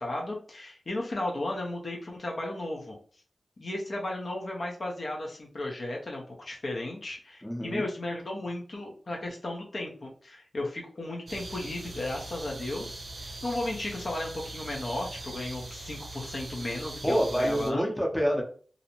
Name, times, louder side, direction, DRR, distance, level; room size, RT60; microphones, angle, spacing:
voice 1, 0.0-3.0 3.6-17.9, left 2 dB, 60° left, -1 dB, 0.6 m, -35 dB
voice 2, 7.4-7.8 17.0-18.4, equal, 15° left, 0 dB, 0.7 m, -27 dB
sound 1, 11.3-17.7, right 2 dB, 75° right, 0.5 m, -41 dB
2.6 x 2.1 x 2.9 m, 0.43 s
cardioid pair, 55°, 0 cm